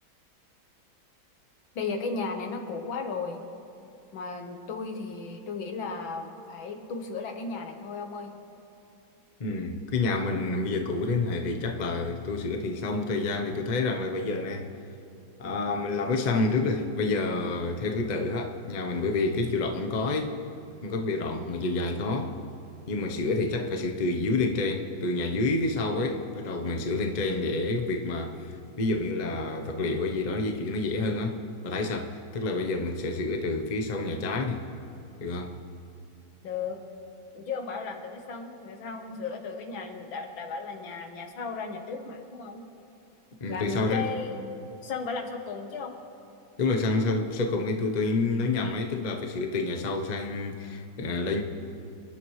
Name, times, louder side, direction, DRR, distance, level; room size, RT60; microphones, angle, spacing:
voice 1, 1.8-3.4 4.1-8.3 36.4-36.8 37.3-42.6 43.5-44.4 44.8-46.0, left 4 dB, 70° left, 4 dB, 2.0 m, -35 dB
voice 2, 9.4-14.7 15.4-20.4 20.8-22.4 22.9-34.7 35.2-35.6 43.4-44.1 46.6-51.4, left 3 dB, 50° left, 4 dB, 0.5 m, -28 dB
28.5 x 10.5 x 3.2 m, 2.8 s
omnidirectional pair, 2.2 m